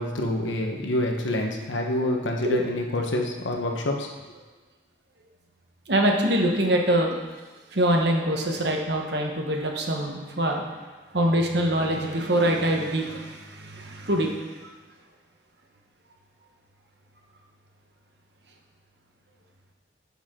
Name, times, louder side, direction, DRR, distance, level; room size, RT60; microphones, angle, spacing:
voice 1, 0.0-4.1, left 1 dB, 75° left, 2 dB, 1.2 m, -27 dB
voice 2, 5.9-7.2 7.7-10.7 11.1-14.3, right 1 dB, 60° right, 1 dB, 1.2 m, -24 dB
10.0 x 7.2 x 3.8 m, 1.3 s
head